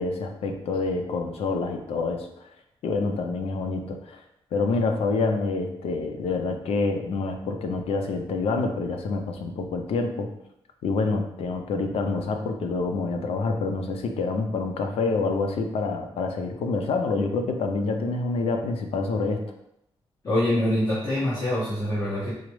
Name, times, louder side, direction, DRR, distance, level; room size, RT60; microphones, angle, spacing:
voice 1, 0.0-2.5 2.8-4.2 4.5-10.3 10.8-19.4, left 3 dB, 85° left, 5 dB, 0.5 m, -27 dB
voice 2, 20.2-22.3, left 1 dB, 35° left, -9 dB, 1.1 m, -25 dB
4.9 x 2.1 x 3.1 m, 0.78 s
wide cardioid pair, 150°, 10 cm